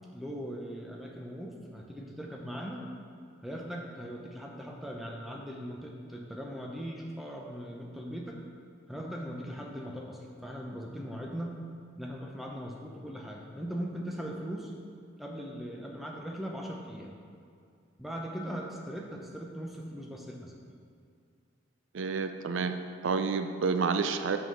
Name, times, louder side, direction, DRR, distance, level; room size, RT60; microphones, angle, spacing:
voice 1, 0.1-2.8 3.4-8.4 8.9-11.6 12.0-14.7 15.2-17.1 18.0-20.5, equal, ahead, -1 dB, 0.7 m, -39 dB
voice 2, 21.9-22.7 23.0-24.4, right 5 dB, 80° right, 8 dB, 0.4 m, -29 dB
6.0 x 5.5 x 6.6 m, 2.3 s
head